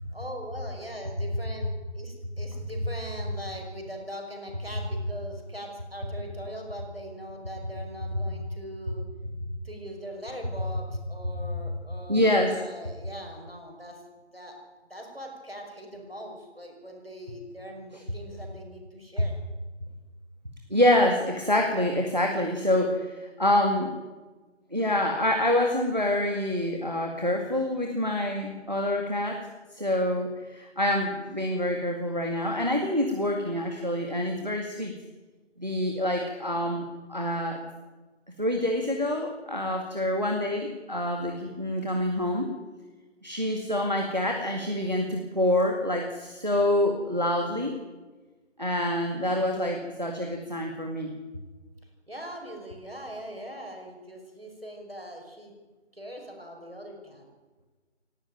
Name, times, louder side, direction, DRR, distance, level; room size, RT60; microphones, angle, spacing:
voice 1, 0.0-9.1 9.6-14.0 14.3-14.6 14.9-19.4 51.8-55.5 55.9-57.3, equal, 55° right, 2 dB, 5.8 m, -41 dB
voice 2, 12.1-12.6 20.7-23.9 24.7-29.4 29.7-34.9 35.6-37.6 38.4-42.5 43.2-47.8 48.6-51.1, left 1 dB, 40° right, 3 dB, 1.9 m, -26 dB
18.5 x 16.0 x 9.0 m, 1.3 s
figure-of-eight pair, 180°, 35 cm